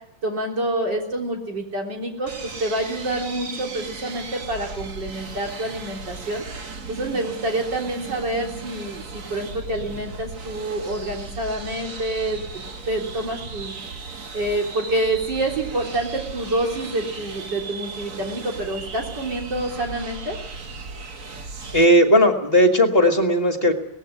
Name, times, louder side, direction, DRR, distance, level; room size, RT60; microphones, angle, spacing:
voice 1, 0.2-6.4 6.9-13.8 14.3-20.4, right 1 dB, 70° right, 0 dB, 4.3 m, -27 dB
sound 1, 2.3-21.9, right 4 dB, 50° right, 1.7 m, -36 dB
voice 2, 21.7-23.7, equal, 30° left, 4 dB, 2.0 m, -16 dB
18.5 x 15.5 x 9.6 m, 0.80 s
omnidirectional pair, 2.0 m